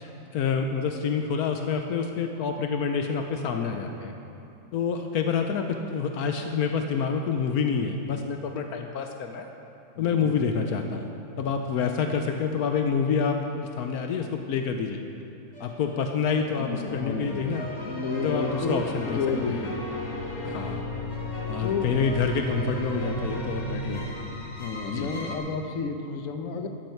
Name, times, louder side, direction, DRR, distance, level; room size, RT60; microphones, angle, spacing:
voice 1, 0.0-4.1 4.7-9.5 10.0-11.1 11.4-15.0 15.6-17.7 18.1-19.2 19.5-19.7 20.4-20.8 21.5-24.1 24.9-25.2, left 6 dB, 80° left, 4 dB, 1.2 m, -27 dB
voice 2, 10.0-10.3 16.6-19.8 21.6-22.0 24.6-26.7, left 4 dB, 65° left, 5 dB, 1.3 m, -31 dB
sound 1, 15.5-25.4, equal, 30° left, 1.9 m, -35 dB
14.0 x 13.5 x 4.5 m, 2.7 s
omnidirectional pair, 1.6 m